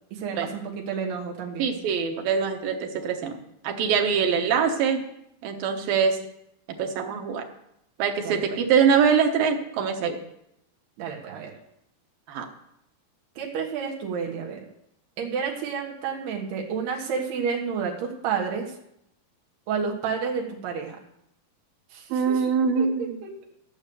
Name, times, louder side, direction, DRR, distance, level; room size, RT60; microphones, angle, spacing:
voice 1, 0.1-1.8 8.2-8.6 11.0-11.5 13.4-14.7 15.2-18.8 19.7-21.0 21.9-22.4 22.8-23.3, right 6 dB, 90° right, -1 dB, 3.5 m, -30 dB
voice 2, 1.6-3.4 3.6-5.0 5.4-6.2 6.8-7.5 8.0-10.2 12.3-12.5 22.1-23.2, right 6 dB, 70° right, 4 dB, 2.9 m, -23 dB
14.0 x 7.0 x 6.9 m, 0.79 s
omnidirectional pair, 4.5 m